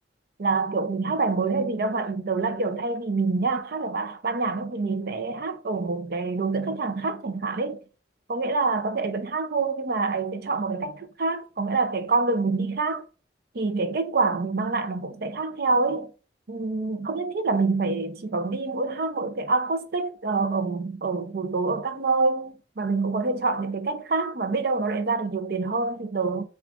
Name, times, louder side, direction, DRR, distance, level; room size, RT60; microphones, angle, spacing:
voice 1, 0.4-7.8 8.3-13.0 13.5-16.1 16.5-26.4, right 3 dB, 60° right, 0.6 m, -26 dB
6.0 x 2.4 x 2.5 m
head